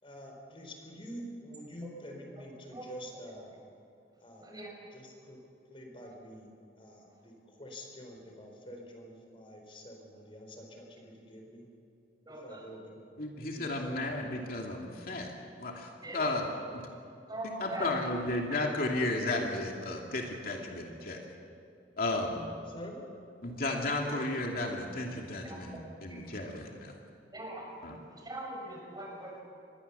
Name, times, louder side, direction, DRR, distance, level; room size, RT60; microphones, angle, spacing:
voice 1, 0.0-3.5 4.2-4.5 4.9-5.4 5.7-6.5 6.8-7.3 7.6-11.6 12.4-13.0 13.4-14.2 22.7-23.0, equal, 30° left, 2 dB, 4.3 m, -47 dB
voice 2, 12.3-12.6 16.0-16.3 17.3-17.9 24.1-24.2 25.4-25.6 26.1-26.2 27.3-27.7 28.2-29.4, right 1 dB, 25° right, 0 dB, 6.1 m, -41 dB
voice 3, 13.2-15.3 15.6-16.8 17.6-21.2 22.0-22.4 23.4-26.9 27.8-28.0, left 2 dB, 55° left, 0 dB, 2.7 m, -34 dB
27.0 x 21.0 x 7.0 m, 2.6 s
head